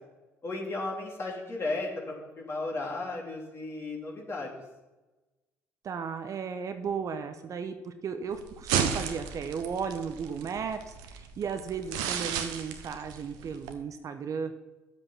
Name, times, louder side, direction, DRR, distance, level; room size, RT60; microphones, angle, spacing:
voice 1, 0.4-4.5, left 2 dB, 35° left, -2 dB, 3.6 m, -35 dB
voice 2, 5.8-14.5, right 6 dB, 45° right, 8 dB, 0.9 m, -35 dB
sound 1, 8.3-13.7, right 8 dB, 70° right, 1.0 m, -34 dB
10.5 x 8.0 x 5.9 m, 1.1 s
hypercardioid pair, 50°, 8 cm